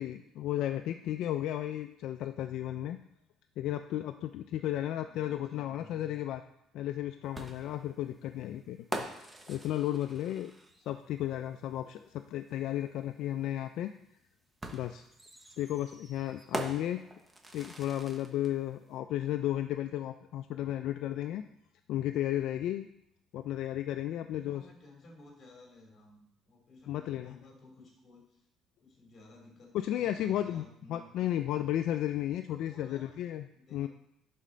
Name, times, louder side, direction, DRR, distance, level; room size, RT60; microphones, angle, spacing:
voice 1, 0.0-3.0 3.6-6.4 6.7-10.5 10.9-13.9 14.7-15.1 15.6-17.0 17.5-21.4 21.9-22.9 23.3-24.7 26.9-27.4 29.8-33.4 33.7-33.9, left 12 dB, 65° left, 8 dB, 0.4 m, -34 dB
voice 2, 4.7-6.2 24.3-28.5 28.8-31.4 32.4-33.2 33.5-33.9, left 2 dB, 30° left, 0 dB, 3.0 m, -55 dB
sound 1, 7.3-11.0 12.5-12.6 14.6-18.5, right 1 dB, 10° right, 0.9 m, -42 dB
11.0 x 4.2 x 5.1 m, 0.75 s
cardioid pair, 140°, 0 cm